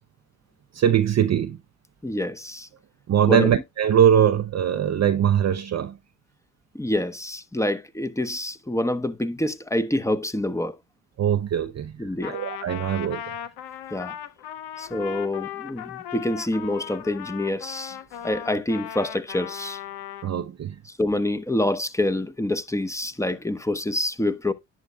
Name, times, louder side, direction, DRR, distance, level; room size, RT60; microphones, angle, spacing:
voice 1, 0.7-1.6 3.1-6.0 11.2-11.9 12.3-13.3 20.2-20.7, right 9 dB, 45° right, 0.6 m, -21 dB
voice 2, 2.0-2.7 3.3-3.6 6.7-10.8 12.0-12.4 13.9-14.1 14.8-18.0 18.2-19.8 20.9-24.5, left 1 dB, 5° left, 0.9 m, -26 dB
Trumpet, 12.2-20.3, left 11 dB, 75° left, 0.7 m, -37 dB
11.0 x 7.9 x 2.2 m
hypercardioid pair, 45°, 40 cm